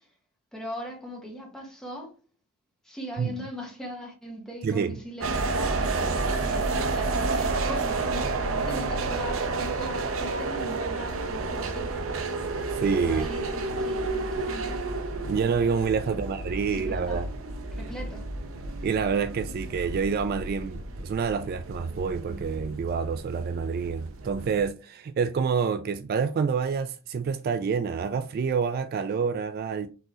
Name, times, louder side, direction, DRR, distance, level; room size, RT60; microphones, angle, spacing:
voice 1, 0.5-2.1 2.8-12.3 13.0-14.8 16.0-16.3 16.8-17.2 17.7-18.3, equal, 5° left, 1.3 m, -40 dB
voice 2, 4.6-5.0 12.8-13.3 15.2-17.3 18.8-29.9, right 6 dB, 50° right, 0.3 m, -27 dB
sound 1, 5.2-24.7, right 3 dB, 85° right, 0.7 m, -31 dB
4.6 x 3.8 x 3.0 m
head